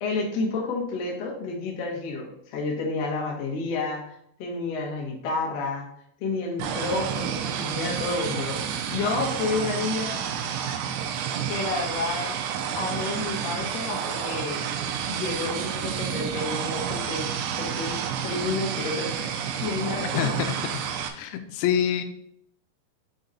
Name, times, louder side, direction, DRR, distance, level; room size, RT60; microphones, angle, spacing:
voice 1, 0.0-5.9 6.2-8.6 8.9-10.2 11.5-12.4 12.7-14.6 15.1-17.3 17.6-19.3 19.6-20.3, left 3 dB, 65° left, -2 dB, 1.6 m, -30 dB
sound 1, 6.6-21.1, right 8 dB, 90° right, 3.0 m, -30 dB
voice 2, 20.2-20.5 21.2-22.0, left 9 dB, 90° left, 8 dB, 2.9 m, -25 dB
7.0 x 4.0 x 4.1 m, 0.69 s
omnidirectional pair, 5.1 m